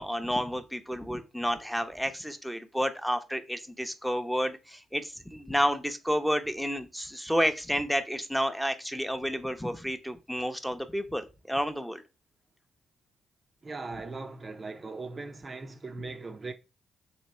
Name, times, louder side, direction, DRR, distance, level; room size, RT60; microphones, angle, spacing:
voice 1, 0.0-12.0, equal, ahead, 0.8 m, -30 dB
voice 2, 13.6-16.5, right 3 dB, 40° right, 0.5 m, -39 dB
3.2 x 3.0 x 4.2 m
hypercardioid pair, 45°, 0 cm